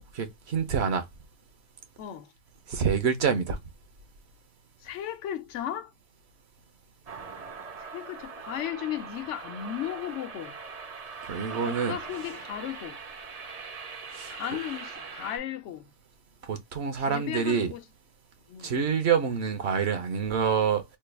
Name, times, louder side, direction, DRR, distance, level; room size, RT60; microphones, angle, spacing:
voice 1, 0.1-1.1 2.7-3.6 11.2-12.0 14.1-14.3 16.4-17.7 18.6-20.8, right 6 dB, 65° right, 1.0 m, -27 dB
voice 2, 2.0-2.3 4.8-5.9 7.8-10.6 11.6-13.0 14.3-15.9 17.1-17.8 18.5-18.7, left 11 dB, 85° left, 1.0 m, -35 dB
sound 1, 7.1-15.4, right 5 dB, 45° right, 0.5 m, -41 dB
3.3 x 2.2 x 3.2 m
omnidirectional pair, 1.2 m